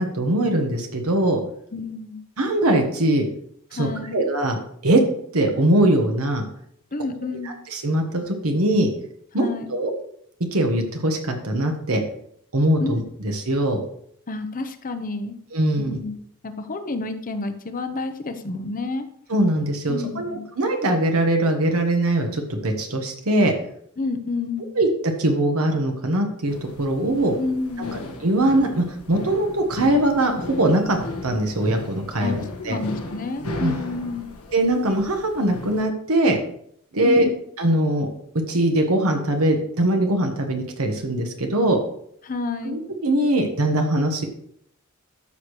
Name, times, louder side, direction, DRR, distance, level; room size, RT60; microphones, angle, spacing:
voice 1, 0.0-1.4 2.4-3.3 3.7-4.6 4.8-5.0 5.3-6.4 7.4-8.9 9.3-9.9 10.5-12.0 12.5-13.8 15.5-16.0 19.3-23.5 24.7-27.3 27.9-31.0 31.2-32.8 33.4-33.8 34.5-36.4 36.9-37.3 37.6-38.1 38.3-41.8 42.6-44.3, right 1 dB, 70° right, 3 dB, 1.3 m, -21 dB
voice 2, 1.7-2.2 3.7-4.2 6.9-7.6 9.4-9.7 12.8-13.0 14.3-15.4 15.8-16.2 16.4-19.1 19.9-20.4 24.0-24.8 27.4-28.0 32.2-34.3 37.0-37.3 42.2-42.8, left 3 dB, 40° left, 9 dB, 0.8 m, -29 dB
sound 1, 26.5-35.8, left 1 dB, 85° left, 1.4 m, -36 dB
12.5 x 6.5 x 3.2 m, 0.68 s
head